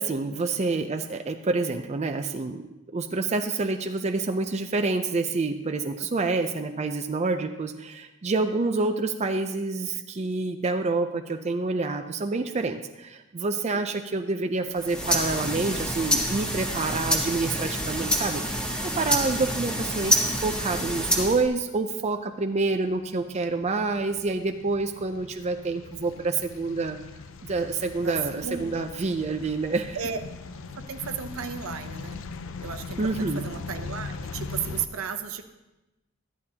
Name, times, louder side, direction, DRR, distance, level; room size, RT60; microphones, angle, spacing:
voice 1, 0.0-2.6 2.9-27.0 27.4-30.0 33.0-33.4, right 3 dB, 30° right, 5 dB, 0.5 m, -28 dB
sound 1, 14.7-21.5, equal, 5° left, 1.6 m, -27 dB
sound 2, 22.0-34.9, left 4 dB, 65° left, 0.5 m, -40 dB
voice 2, 28.0-28.9 29.9-30.2 30.7-32.3 32.6-35.4, right 7 dB, 70° right, 8 dB, 0.7 m, -34 dB
13.5 x 11.0 x 2.8 m, 1.0 s
head